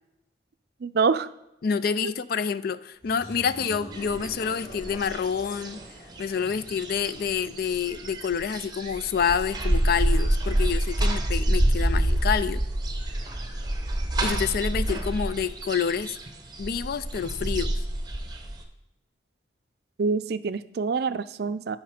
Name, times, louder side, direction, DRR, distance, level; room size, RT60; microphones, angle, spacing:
voice 1, 0.8-1.3 2.0-2.1 20.0-21.8, right 5 dB, 60° right, 14 dB, 0.4 m, -26 dB
voice 2, 1.6-5.8 6.2-12.6 14.2-16.2 16.6-17.7, left 6 dB, 55° left, 14 dB, 0.4 m, -28 dB
sound 1, 3.0-7.6, equal, 25° left, 3.6 m, -45 dB
sound 2, 3.9-4.4 4.7-18.6, right 1 dB, 25° right, 1.0 m, -27 dB
8.8 x 5.6 x 4.9 m, 0.89 s
head